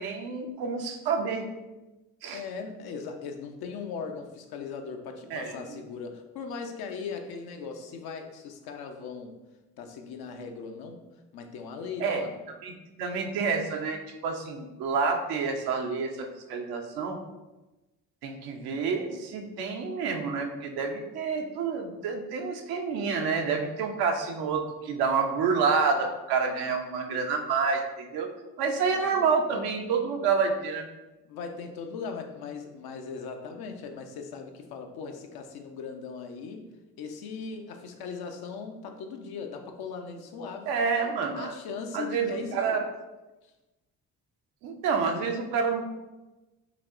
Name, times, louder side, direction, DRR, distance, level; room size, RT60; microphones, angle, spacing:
voice 1, 0.0-1.4 2.2-2.4 5.3-5.6 12.0-12.3 12.6-17.2 18.2-28.3 28.6-30.9 40.7-41.5 41.9-42.8 44.6-45.8, right 5 dB, 80° right, 4 dB, 0.7 m, -28 dB
voice 2, 2.3-9.3 9.8-11.0 11.3-12.4 26.0-26.1 28.9-29.2 31.3-36.7 37.0-40.7 41.4-42.8, left 5 dB, 75° left, 4 dB, 0.6 m, -39 dB
5.1 x 2.8 x 2.5 m, 1.1 s
supercardioid pair, 55°, 38 cm